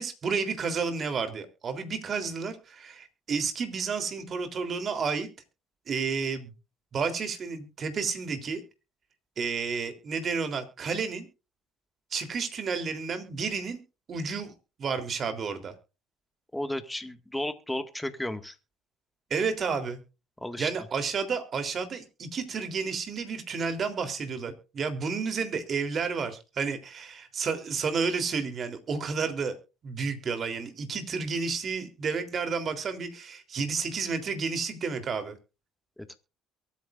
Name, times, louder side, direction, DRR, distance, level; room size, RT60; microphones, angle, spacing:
voice 1, 0.0-5.3 5.9-6.5 6.9-8.6 9.4-11.3 12.1-13.8 14.1-14.5 14.8-15.7 19.3-20.0 20.6-29.6 29.8-35.4, right 5 dB, 45° right, 8 dB, 3.4 m, -31 dB
voice 2, 16.5-18.6 20.4-20.7 36.1-36.2, left 1 dB, 5° left, 8 dB, 1.9 m, -33 dB
23.0 x 9.4 x 2.5 m, 0.31 s
supercardioid pair, 80°, 0 cm